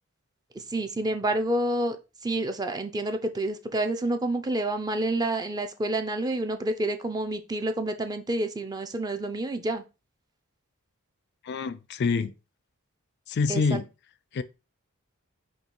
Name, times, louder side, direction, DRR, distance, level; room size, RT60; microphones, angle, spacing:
voice 1, 0.5-2.0 2.2-9.8 13.5-13.8, right 1 dB, 20° right, 0.4 m, -28 dB
voice 2, 11.4-12.3 13.3-13.9 14.3-14.4, left 4 dB, 50° left, 0.3 m, -26 dB
5.3 x 2.6 x 3.8 m
head